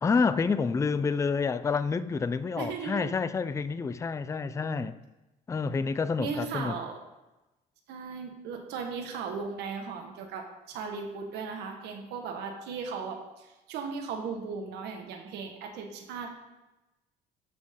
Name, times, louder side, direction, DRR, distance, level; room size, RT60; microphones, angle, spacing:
voice 1, 0.0-4.9 5.5-6.8, left 5 dB, 15° left, 0.4 m, -28 dB
voice 2, 2.6-3.1 6.2-6.9 7.9-16.3, right 5 dB, 85° right, 1.5 m, -37 dB
12.5 x 6.1 x 3.7 m
cardioid pair, 110°, 17 cm